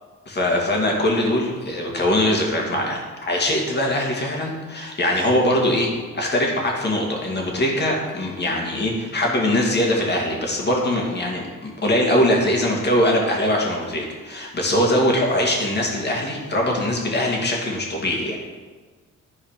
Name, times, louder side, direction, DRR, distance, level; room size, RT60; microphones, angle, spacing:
voice 1, 0.3-18.4, left 1 dB, 35° left, -1 dB, 2.4 m, -22 dB
12.0 x 4.7 x 5.2 m, 1.4 s
cardioid pair, 90°, 30 cm